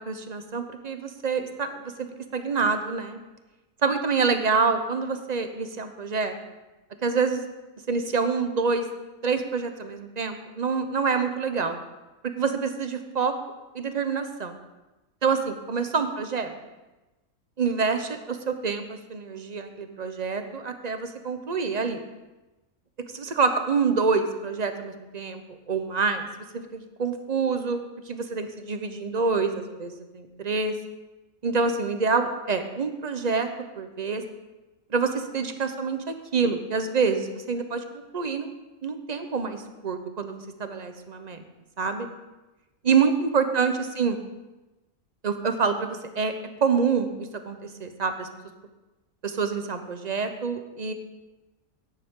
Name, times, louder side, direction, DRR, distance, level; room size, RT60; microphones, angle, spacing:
voice 1, 0.1-2.1 2.3-3.2 3.8-6.3 7.0-7.4 7.9-8.8 9.2-11.8 12.4-13.3 13.7-14.5 15.2-16.5 17.6-22.0 23.1-25.4 25.7-26.3 26.5-30.7 31.4-33.5 33.8-34.2 34.9-37.8 38.1-38.5 38.8-41.4 41.8-42.1 42.8-44.2 45.2-46.3 46.6-48.3 49.2-50.9, right 5 dB, 35° right, 7 dB, 0.8 m, -26 dB
14.0 x 9.8 x 3.7 m, 1.1 s
omnidirectional pair, 1.5 m